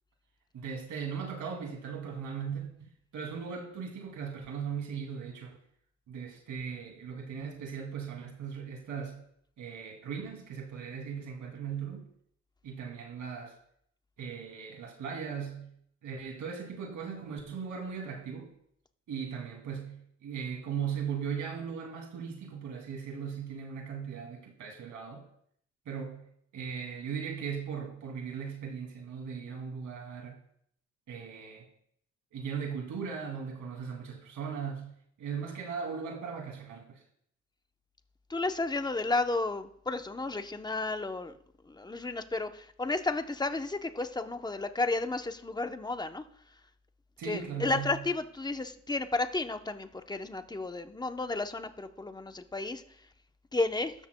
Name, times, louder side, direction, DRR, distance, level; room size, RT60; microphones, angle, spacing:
voice 1, 0.5-5.6 6.1-9.2 9.6-12.1 12.6-13.6 14.2-15.7 16.0-18.5 19.1-25.3 25.9-30.4 31.1-31.7 32.3-34.9 35.2-37.0 47.2-48.0, right 6 dB, 80° right, 1 dB, 2.6 m, -38 dB
voice 2, 38.3-41.3 41.7-46.2 47.2-52.8 53.5-53.9, left 3 dB, 15° left, 8 dB, 0.8 m, -32 dB
15.0 x 13.0 x 2.2 m, 0.68 s
cardioid pair, 110°, 30 cm